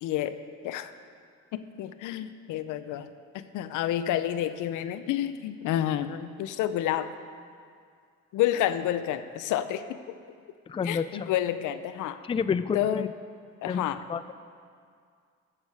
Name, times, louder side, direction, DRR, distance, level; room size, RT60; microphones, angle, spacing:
voice 1, 0.0-0.4 0.6-0.9 1.5-7.1 8.3-10.0 10.8-12.2 12.7-13.1 13.6-14.0, left 11 dB, 90° left, 12 dB, 0.6 m, -29 dB
voice 2, 10.7-11.3 12.2-13.1 13.7-13.8 14.1-14.3, left 6 dB, 20° left, 13 dB, 0.3 m, -29 dB
15.5 x 7.4 x 4.8 m, 2.2 s
cardioid pair, 90°, 30 cm